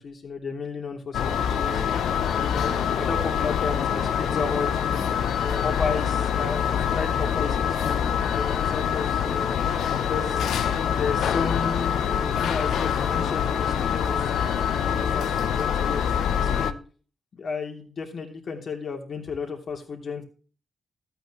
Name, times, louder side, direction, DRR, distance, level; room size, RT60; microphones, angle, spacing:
voice 1, 0.0-1.9 2.3-5.1 5.6-9.5 10.1-10.6 10.9-14.1 14.8-16.0 16.3-16.8 17.3-20.2, left 5 dB, 65° left, 1 dB, 3.0 m, -33 dB
sound 1, 1.1-16.7, left 8 dB, 80° left, 0.6 m, -25 dB
sound 2, 1.6-15.3, right 1 dB, 10° right, 2.0 m, -42 dB
13.5 x 9.0 x 3.1 m, 0.40 s
cardioid pair, 60°, 0 cm